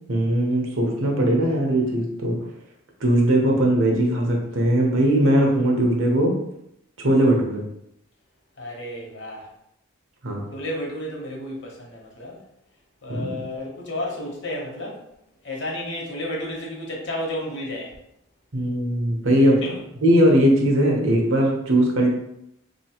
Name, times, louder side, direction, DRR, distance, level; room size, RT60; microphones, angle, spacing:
voice 1, 0.1-2.4 3.0-6.4 7.0-7.6 10.2-10.4 13.1-13.3 18.5-19.6 20.0-22.1, right 1 dB, 70° right, 0 dB, 0.9 m, -19 dB
voice 2, 8.6-9.5 10.5-12.4 13.0-15.0 15.4-17.9 19.6-19.8, left 1 dB, 55° left, -1 dB, 1.0 m, -32 dB
3.8 x 3.0 x 2.9 m, 0.79 s
head